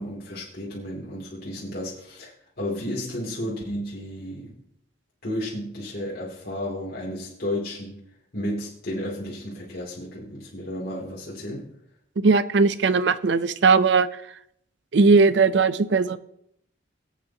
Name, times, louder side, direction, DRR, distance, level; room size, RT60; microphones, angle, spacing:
voice 1, 0.0-4.6 5.2-8.0 8.3-11.7, left 1 dB, 55° left, -6 dB, 2.7 m, -33 dB
voice 2, 12.2-14.1 14.9-16.2, right 4 dB, 70° right, 15 dB, 0.5 m, -18 dB
23.5 x 8.2 x 2.9 m, 0.74 s
head